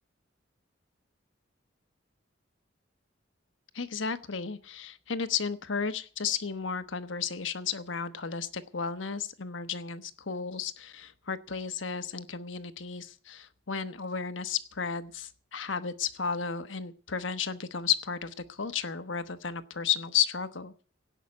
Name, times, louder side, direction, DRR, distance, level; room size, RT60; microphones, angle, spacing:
voice 1, 3.7-20.7, left 7 dB, 80° left, 11 dB, 1.1 m, -33 dB
17.5 x 5.8 x 9.7 m, 0.41 s
head